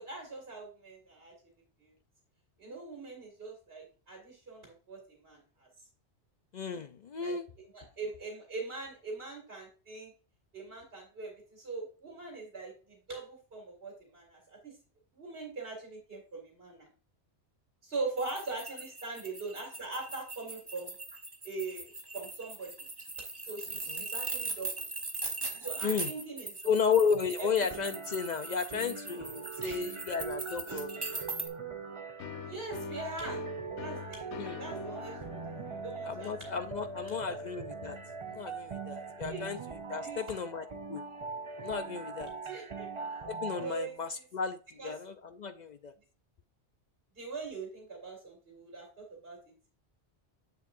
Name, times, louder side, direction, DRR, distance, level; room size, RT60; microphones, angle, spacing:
voice 1, 0.0-1.3 1.8-1.9 2.6-5.7 7.2-7.4 7.7-10.1 10.5-14.7 15.1-16.9 17.8-20.9 21.4-22.9 23.5-24.7 25.6-26.7 27.4-27.6 29.6-29.9 32.5-33.4 33.8-36.5 37.1-37.4 39.3-39.4 40.0-40.2 42.5-42.9 43.6-44.2 44.8-44.9 47.2-49.4, right 3 dB, 55° right, 2.3 m, -42 dB
voice 2, 6.5-7.4 23.9-24.1 25.8-26.1 26.6-31.3 34.4-34.6 36.0-38.0 38.3-41.0 41.6-42.3 43.3-45.9, left 6 dB, 55° left, 0.5 m, -33 dB
sound 1, 18.2-31.5, right 3 dB, 20° right, 1.1 m, -40 dB
sound 2, 27.7-43.7, right 5 dB, 40° right, 0.4 m, -42 dB
sound 3, 32.2-39.7, left 9 dB, 85° left, 1.0 m, -47 dB
7.8 x 7.3 x 2.5 m
omnidirectional pair, 1.2 m